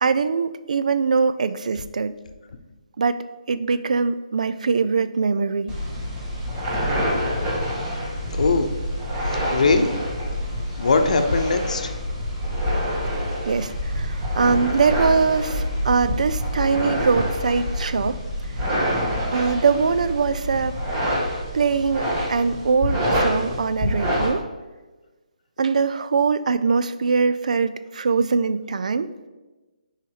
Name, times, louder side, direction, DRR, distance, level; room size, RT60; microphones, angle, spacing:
voice 1, 0.0-2.1 3.0-5.7 13.5-18.2 19.3-20.8 21.5-24.5 25.6-29.1, right 5 dB, 70° right, 13 dB, 0.4 m, -22 dB
sound 1, 5.7-24.3, equal, 25° right, 2.0 m, -26 dB
voice 2, 8.3-8.7 9.3-9.9 10.8-11.9, left 3 dB, 65° left, 7 dB, 0.8 m, -21 dB
5.9 x 4.9 x 4.8 m, 1.2 s
hypercardioid pair, 155°, 4 cm